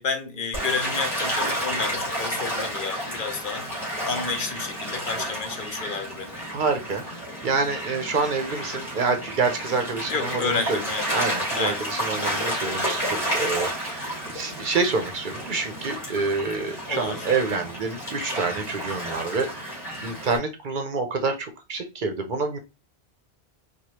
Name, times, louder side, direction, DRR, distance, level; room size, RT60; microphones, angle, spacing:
voice 1, 0.0-6.4 10.1-11.1 11.5-11.9 16.9-17.3, left 5 dB, 60° left, 0.7 m, -31 dB
Gull seagull / Waves surf, 0.5-20.4, equal, 35° left, 2.4 m, -31 dB
voice 2, 6.5-7.2 7.4-10.8 11.1-22.6, right 4 dB, 55° right, 0.7 m, -27 dB
4.8 x 2.3 x 2.9 m
omnidirectional pair, 1.1 m